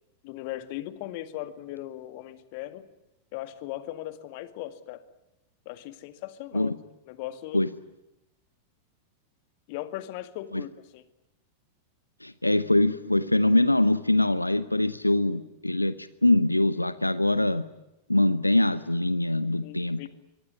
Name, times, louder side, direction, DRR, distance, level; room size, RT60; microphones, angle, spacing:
voice 1, 0.2-2.9 3.3-5.0 5.7-6.7 7.1-7.6 9.7-11.0 19.6-20.1, left 14 dB, 45° left, 12 dB, 2.2 m, -38 dB
voice 2, 12.2-17.6 18.1-20.1, left 1 dB, 85° left, 15 dB, 0.9 m, -23 dB
25.0 x 22.5 x 9.8 m, 0.91 s
figure-of-eight pair, 90°, 0 cm